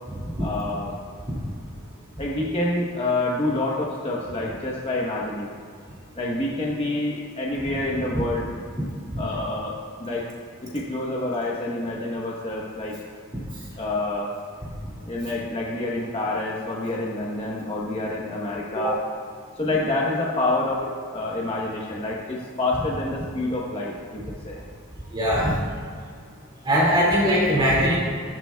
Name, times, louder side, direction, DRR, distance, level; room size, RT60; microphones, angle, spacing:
voice 1, 0.4-0.9 2.2-5.5 6.2-8.5 9.2-9.7 10.0-10.3 10.7-12.9 13.8-14.3 15.1-19.0 19.6-24.6, left 2 dB, 25° left, -3 dB, 1.1 m, -27 dB
voice 2, 25.1-25.6 26.6-28.0, equal, 20° right, -6 dB, 2.3 m, -21 dB
16.0 x 11.0 x 2.3 m, 2.2 s
head